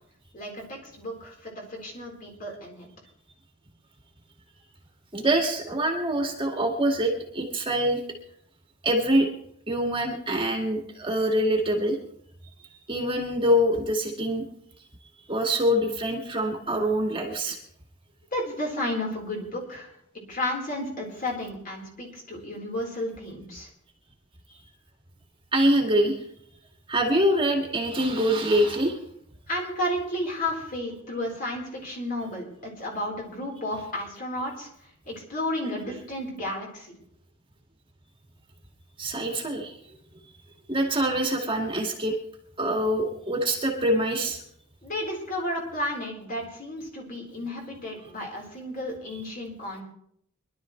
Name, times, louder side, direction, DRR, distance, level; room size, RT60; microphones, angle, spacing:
voice 1, 0.3-2.9 18.3-19.9 20.3-23.7 29.5-34.7 35.1-36.9 44.8-49.8, left 1 dB, 45° left, -1 dB, 4.1 m, -32 dB
voice 2, 5.1-8.0 8.8-9.3 9.7-12.0 12.9-14.4 15.3-17.6 25.5-26.1 26.9-29.0 39.0-39.7 40.7-42.1 42.6-44.4, equal, 25° right, 1 dB, 1.9 m, -24 dB
23.5 x 12.0 x 3.2 m, 0.70 s
head